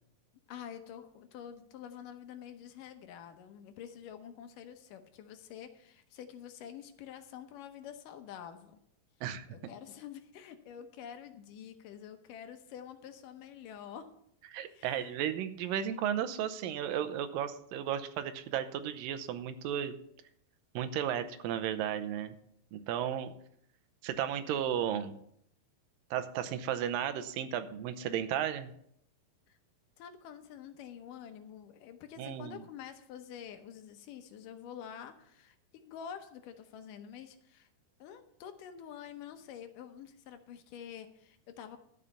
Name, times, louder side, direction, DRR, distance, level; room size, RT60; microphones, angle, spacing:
voice 1, 0.5-8.8 9.5-14.1 14.7-15.1 29.5-29.6 30.0-37.7 38.0-41.8, left 9 dB, 75° left, 8 dB, 2.4 m, -48 dB
voice 2, 14.5-20.0 20.8-22.4 22.7-23.3 24.0-25.2 26.1-28.7 32.2-32.6, right 9 dB, 85° right, 11 dB, 2.5 m, -34 dB
12.5 x 5.5 x 7.0 m, 0.70 s
omnidirectional pair, 3.9 m